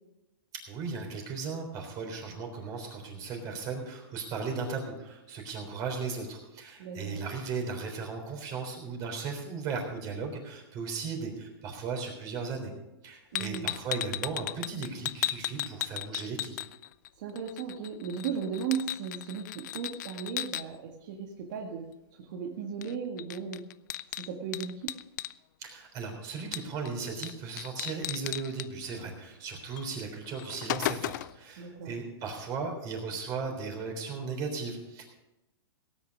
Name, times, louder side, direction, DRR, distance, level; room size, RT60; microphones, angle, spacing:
voice 1, 0.7-12.7 13.0-16.5 25.6-35.0, right 4 dB, 30° right, 2 dB, 3.6 m, -36 dB
voice 2, 6.8-7.2 13.3-13.7 17.2-23.7 24.1-25.0 31.6-31.9, right 7 dB, 50° right, 0 dB, 1.8 m, -36 dB
sound 1, 13.3-17.1 17.4-20.6 22.8-22.9 23.2-25.3 26.5-26.9 27.2-27.3 27.6-28.7 29.8-29.9 30.2-31.4, left 14 dB, 45° left, 0.4 m, -35 dB
18.0 x 9.3 x 5.3 m, 0.97 s
hypercardioid pair, 150°, 13 cm